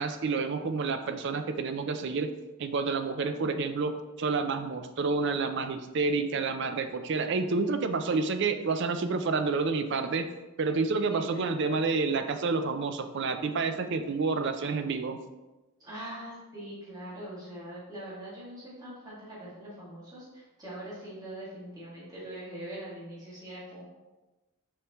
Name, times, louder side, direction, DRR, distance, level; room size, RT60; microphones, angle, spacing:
voice 1, 0.0-2.3 2.6-10.3 10.6-15.2, right 4 dB, 50° right, 8 dB, 0.4 m, -29 dB
voice 2, 15.8-23.8, right 1 dB, 15° right, -9 dB, 2.0 m, -42 dB
6.4 x 4.9 x 3.0 m, 1.1 s
head